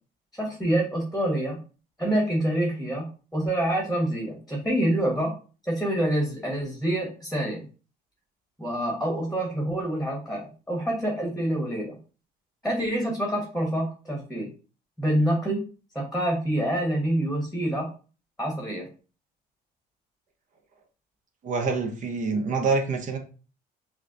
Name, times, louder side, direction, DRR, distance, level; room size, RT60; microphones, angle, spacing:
voice 1, 0.4-1.6 2.0-3.1 3.3-5.3 5.6-7.6 8.6-12.0 12.6-14.5 15.0-15.6 15.9-17.9 18.4-18.9, right 1 dB, ahead, -1 dB, 1.2 m, -26 dB
voice 2, 21.4-23.2, right 4 dB, 50° right, 4 dB, 0.8 m, -26 dB
5.8 x 2.2 x 2.6 m, 0.36 s
cardioid pair, 110°, 17 cm